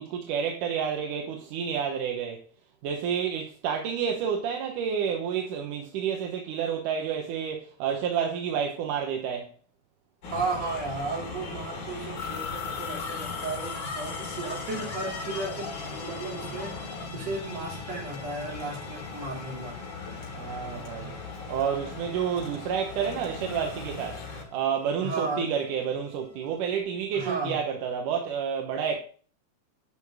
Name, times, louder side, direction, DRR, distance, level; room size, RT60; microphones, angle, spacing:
voice 1, 0.0-2.4 2.8-9.5 20.3-21.1 21.5-24.2 24.5-29.0, right 7 dB, 85° right, 2.6 m, -29 dB
sound 1, 10.2-24.4, left 3 dB, 75° left, 4.4 m, -38 dB
voice 2, 10.3-19.7 25.0-25.5 27.1-27.6, right 3 dB, 55° right, 4.1 m, -34 dB
sound 2, 12.2-26.8, left 8 dB, 60° left, 3.4 m, -44 dB
11.5 x 5.6 x 4.8 m
omnidirectional pair, 3.6 m